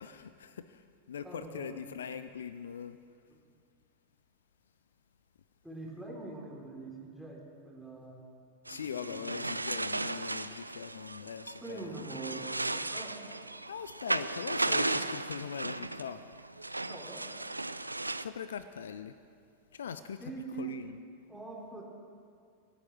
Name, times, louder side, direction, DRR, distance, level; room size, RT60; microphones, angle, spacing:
voice 1, 0.0-3.0 8.7-12.0 13.7-16.2 18.2-19.1 19.7-20.2 20.6-21.0, left 7 dB, 65° left, 13 dB, 0.5 m, -41 dB
voice 2, 1.2-1.8 5.6-8.2 8.7-9.3 11.6-13.2 16.9-17.2 20.2-20.8 21.3-21.8, right 3 dB, ahead, -3 dB, 3.6 m, -43 dB
sound 1, 8.7-18.2, right 2 dB, 85° right, 0.4 m, -35 dB
24.5 x 9.3 x 6.2 m, 2.3 s
figure-of-eight pair, 90°, 0 cm